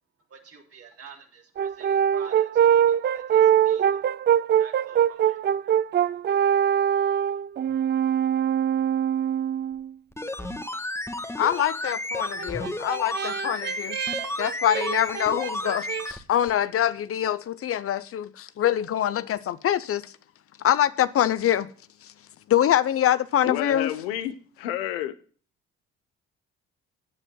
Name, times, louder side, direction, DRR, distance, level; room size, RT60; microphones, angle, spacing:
voice 1, 0.3-4.1 4.5-6.2, right 6 dB, 55° right, 3.4 m, -49 dB
Brass instrument, 1.6-9.9 12.4-16.1, right 9 dB, 35° right, 0.4 m, -23 dB
sound 1, 10.1-16.2 16.5-16.6, left 1 dB, 10° left, 1.5 m, -32 dB
voice 2, 11.4-14.0 14.4-20.1 20.6-21.7 22.5-23.9, left 11 dB, 50° left, 0.7 m, -24 dB
voice 3, 23.4-25.1, left 12 dB, 90° left, 1.0 m, -30 dB
17.5 x 9.0 x 2.3 m
hypercardioid pair, 65°, 29 cm